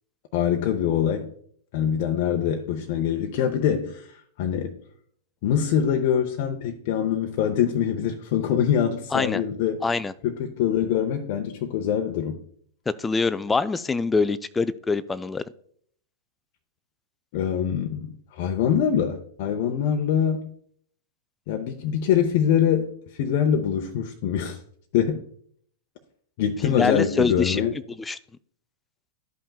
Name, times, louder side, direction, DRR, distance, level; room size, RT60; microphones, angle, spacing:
voice 1, 0.3-1.3 1.7-4.8 5.4-9.8 10.2-12.4 17.3-20.5 21.5-24.6 24.9-25.3 26.4-27.7, left 8 dB, 50° left, 0.7 m, -24 dB
voice 2, 9.1-9.4 9.8-10.1 13.0-15.4 26.6-27.6 28.0-28.2, left 4 dB, 10° left, 0.3 m, -24 dB
12.5 x 5.4 x 2.3 m
figure-of-eight pair, 100°, 0 cm